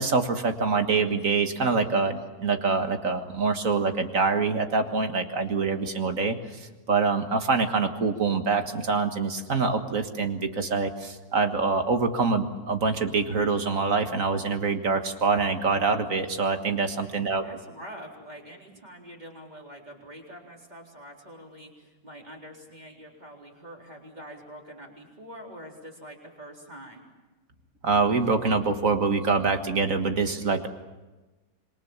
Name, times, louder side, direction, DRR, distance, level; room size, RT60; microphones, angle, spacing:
voice 1, 0.0-17.5 27.8-30.7, right 4 dB, 50° right, 7 dB, 1.8 m, -25 dB
voice 2, 17.3-27.0, equal, 25° right, 0 dB, 4.1 m, -45 dB
27.0 x 22.5 x 7.3 m, 1.1 s
omnidirectional pair, 1.9 m